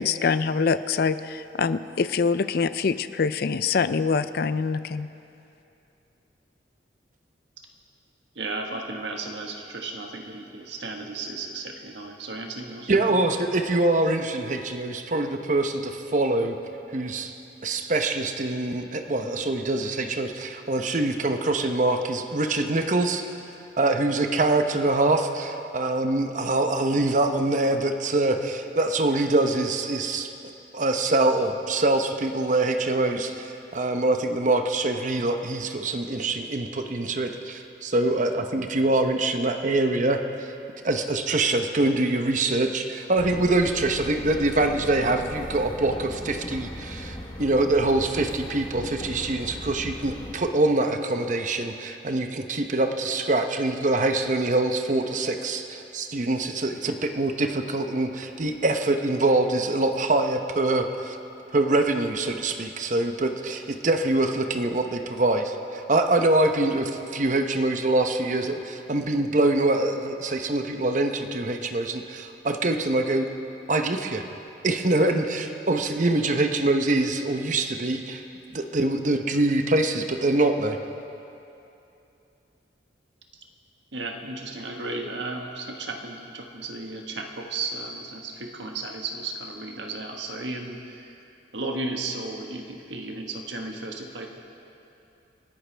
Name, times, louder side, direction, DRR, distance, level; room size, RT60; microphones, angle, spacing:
voice 1, 0.0-5.1, left 5 dB, 55° left, 13 dB, 0.4 m, -24 dB
voice 2, 8.3-13.2 83.9-91.1 91.5-94.3, right 3 dB, 75° right, 2 dB, 1.5 m, -34 dB
voice 3, 12.9-16.6 16.9-17.3 17.6-23.2 23.8-30.3 30.7-40.5 40.8-61.2 61.5-73.3 73.7-74.2 74.6-78.2 78.5-80.8, right 2 dB, 45° right, 6 dB, 0.8 m, -24 dB
sound 1, 43.2-50.3, equal, 25° left, 1.2 m, -38 dB
28.0 x 11.0 x 3.4 m, 2.8 s
head